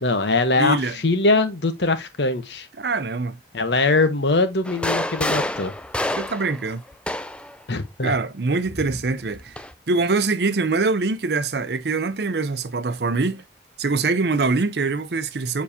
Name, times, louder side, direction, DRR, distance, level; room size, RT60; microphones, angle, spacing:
voice 1, 0.0-0.8 1.0-2.7 3.5-5.7 7.7-8.1, left 3 dB, 80° left, 1.1 m, -21 dB
voice 2, 0.6-1.0 2.8-3.4 6.2-6.8 8.0-9.6 9.9-13.4 13.8-15.6, right 3 dB, 70° right, 0.7 m, -23 dB
sound 1, 4.7-7.6 8.7-9.7, left 1 dB, 5° left, 0.4 m, -28 dB
7.1 x 4.7 x 2.8 m
head